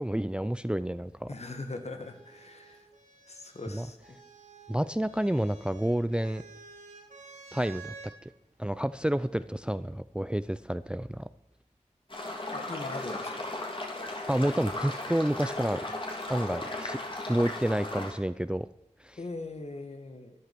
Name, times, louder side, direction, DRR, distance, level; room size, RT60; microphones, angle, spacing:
voice 1, 0.0-1.3 3.7-3.9 4.7-6.4 7.5-7.9 8.2-8.3 8.6-11.3 14.3-15.8 16.3-17.0 17.3-18.7 19.0-19.2, right 1 dB, 10° right, 15 dB, 0.4 m, -29 dB
voice 2, 1.3-2.8 3.3-4.0 12.5-13.5 19.2-20.3, left 2 dB, 60° left, 7 dB, 1.9 m, -40 dB
sound 1, 1.6-8.2 9.3-9.9, right 5 dB, 80° right, 2.7 m, -51 dB
sound 2, 12.1-18.1, left 2 dB, 40° left, 3.1 m, -36 dB
13.5 x 11.0 x 6.0 m, 0.82 s
wide cardioid pair, 75°, 13 cm